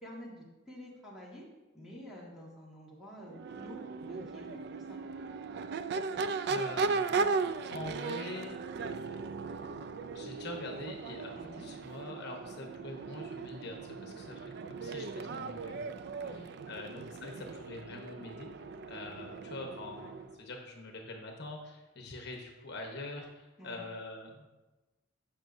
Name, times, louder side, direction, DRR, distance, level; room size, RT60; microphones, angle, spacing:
voice 1, 0.0-1.5 1.7-3.8 4.1-4.6 4.9-5.0 11.4-11.7 16.2-16.7 17.0-17.2 19.3-19.4 23.6-23.8, equal, 5° right, -6 dB, 1.8 m, -49 dB
Crowd / Race car auto racing / Accelerating revving vroom, 3.3-20.4, right 4 dB, 55° right, 0.3 m, -37 dB
voice 2, 6.5-7.0 7.7-8.6 9.5-9.7 10.1-15.9 16.2-18.5 18.9-24.5, left 2 dB, 55° left, 2 dB, 1.1 m, -44 dB
14.0 x 5.7 x 2.6 m, 1.1 s
head